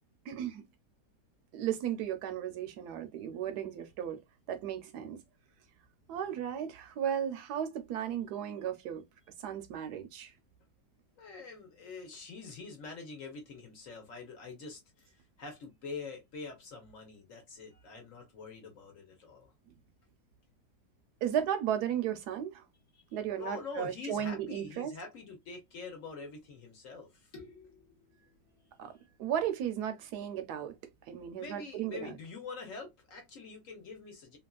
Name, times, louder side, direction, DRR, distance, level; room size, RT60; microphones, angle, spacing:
voice 1, 0.3-0.6 1.5-4.2 4.5-5.2 6.1-9.0 9.4-10.3 21.2-22.7 23.1-24.9 28.8-28.9 29.2-30.8 31.1-32.1, right 9 dB, 75° right, 1.0 m, -35 dB
voice 2, 11.2-19.5 22.9-29.1 31.4-34.4, left 4 dB, 55° left, 1.1 m, -46 dB
2.9 x 2.8 x 2.2 m
omnidirectional pair, 1.9 m